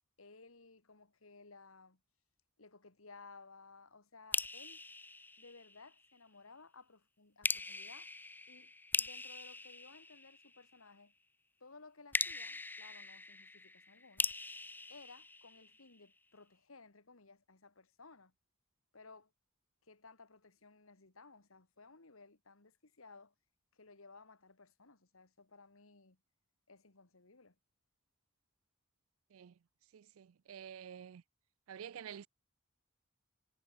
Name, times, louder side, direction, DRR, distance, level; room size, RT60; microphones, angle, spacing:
voice 1, 0.2-2.0 2.6-4.8 5.4-8.1 8.5-8.7 9.0-11.1 11.6-14.3 14.9-18.3 18.9-19.3 19.8-23.3 23.7-26.2 26.7-27.6, left 3 dB, 85° left, 2.4 m, -58 dB
sound 1, 4.3-6.1 7.4-10.8 12.1-16.0, left 3 dB, 10° left, 0.6 m, -41 dB
voice 2, 29.9-31.2 31.7-32.3, right 8 dB, 85° right, 0.4 m, -49 dB
head